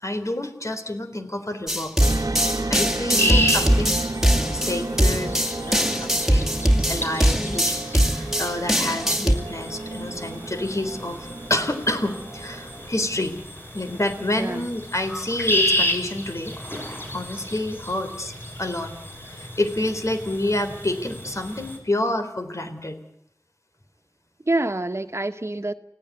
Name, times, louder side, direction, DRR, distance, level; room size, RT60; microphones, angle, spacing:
voice 1, 0.0-1.9 2.7-4.0 4.5-5.4 5.7-13.4 13.7-16.8 17.1-18.3 18.6-18.9 19.3-23.0, left 1 dB, 60° left, 3.9 m, -28 dB
sound 1, 1.7-9.3, equal, 5° right, 2.4 m, -21 dB
sound 2, 2.0-13.3, right 2 dB, 75° right, 1.2 m, -32 dB
voice 2, 3.1-3.5 14.4-14.7 24.5-25.7, right 2 dB, 50° right, 1.4 m, -27 dB
sound 3, 3.2-21.8, left 1 dB, 40° left, 6.5 m, -31 dB
29.5 x 17.0 x 9.4 m
wide cardioid pair, 40°, 6 cm